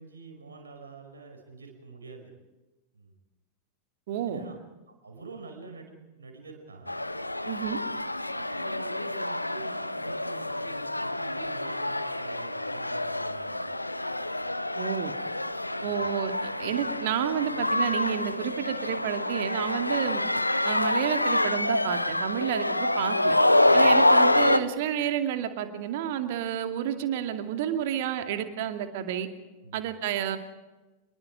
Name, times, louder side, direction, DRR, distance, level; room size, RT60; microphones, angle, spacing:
voice 1, 0.0-2.3 2.9-3.1 4.2-4.6 5.0-6.9 7.6-7.9 8.2-13.7 15.7-16.0 23.6-24.0 29.6-29.8, right 4 dB, 70° right, 3 dB, 5.6 m, -47 dB
voice 2, 4.1-4.5 7.5-7.8 14.8-15.1 15.8-20.2 20.6-23.4 23.7-29.3 29.7-30.4, right 10 dB, 50° right, 7 dB, 2.5 m, -30 dB
sound 1, 6.9-24.6, left 1 dB, 85° left, 0.8 m, -26 dB
26.5 x 22.0 x 5.0 m, 1.1 s
figure-of-eight pair, 90°, 0 cm